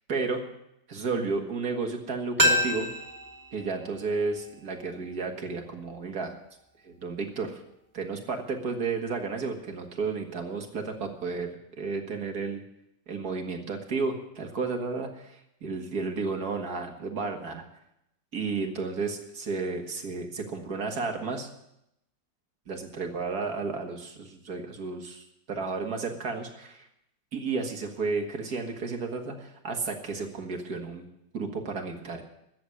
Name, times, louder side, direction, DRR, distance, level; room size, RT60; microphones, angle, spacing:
voice 1, 0.1-0.4 0.9-2.9 3.5-6.4 6.8-7.6 7.9-11.5 11.8-12.6 13.1-17.6 18.3-21.5 22.7-26.9 27.3-31.1 31.3-32.2, right 4 dB, 55° right, 3 dB, 2.2 m, -32 dB
sound 1, 2.4-5.2 5.5-5.6, left 1 dB, 10° right, 1.5 m, -29 dB
13.0 x 8.0 x 9.8 m, 0.81 s
omnidirectional pair, 2.0 m